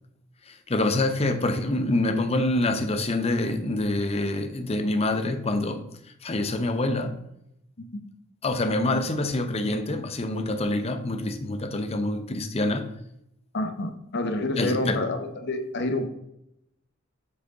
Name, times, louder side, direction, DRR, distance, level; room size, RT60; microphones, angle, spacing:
voice 1, 0.5-5.9 6.2-7.2 8.4-12.9 14.6-15.0, left 2 dB, 30° left, 0.6 m, -26 dB
voice 2, 13.5-16.1, left 2 dB, 55° left, 0.9 m, -28 dB
7.4 x 4.8 x 3.9 m
head